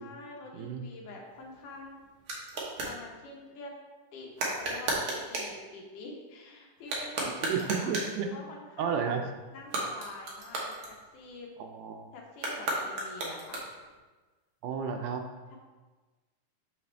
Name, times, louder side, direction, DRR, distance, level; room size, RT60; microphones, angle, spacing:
voice 1, 0.0-2.0 2.8-3.7 4.1-7.9 8.3-9.2 9.5-11.5 12.1-13.7 15.5-15.6, left 3 dB, 80° left, -1 dB, 2.7 m, -46 dB
voice 2, 0.5-0.9 7.4-8.3 8.8-9.2 11.6-12.1 14.6-15.3, right 6 dB, 80° right, 4 dB, 2.1 m, -32 dB
sound 1, 1.2-3.0 4.3-5.6 6.8-8.2 9.6-11.4 12.3-14.0, right 2 dB, 55° right, 1.8 m, -34 dB
6.8 x 5.6 x 3.3 m, 1.3 s
omnidirectional pair, 3.6 m